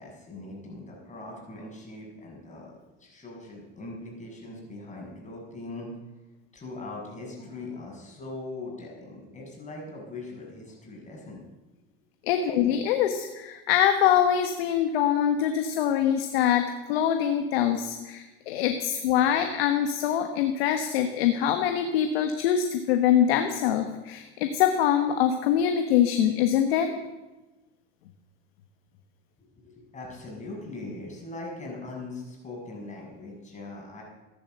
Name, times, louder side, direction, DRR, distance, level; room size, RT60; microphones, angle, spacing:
voice 1, 0.0-2.7 3.0-5.9 6.5-11.5 12.6-12.7 29.6-34.0, left 2 dB, 25° left, -1 dB, 6.7 m, -40 dB
voice 2, 12.3-26.9, left 9 dB, 90° left, 6 dB, 1.3 m, -24 dB
14.5 x 10.5 x 7.9 m, 1.1 s
supercardioid pair, 105°, 30 cm